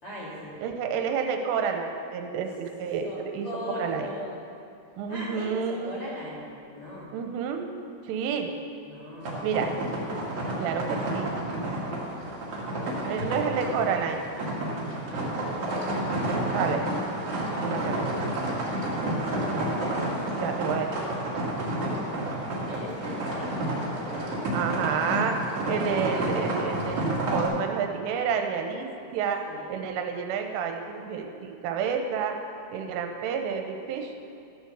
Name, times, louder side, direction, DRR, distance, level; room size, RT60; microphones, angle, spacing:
voice 1, 0.0-0.6 3.0-4.3 5.1-7.1 8.8-9.5 11.5-12.3 15.0-15.4 21.8-22.2 22.6-24.7 29.5-29.7, left 1 dB, 40° left, -9 dB, 2.4 m, -40 dB
voice 2, 0.6-3.1 3.3-3.5 3.8-4.1 5.0-6.0 7.1-7.6 8.0-8.5 9.4-9.7 10.6-11.3 13.1-14.2 16.5-16.8 17.6-18.0 20.3-20.9 24.5-25.4 25.7-28.9 29.1-29.4 29.7-32.4 32.7-34.1, right 7 dB, 90° right, 4 dB, 3.2 m, -29 dB
sound 1, 9.2-27.5, right 1 dB, 55° right, 1.7 m, -30 dB
14.5 x 6.5 x 6.9 m, 2.6 s
omnidirectional pair, 5.8 m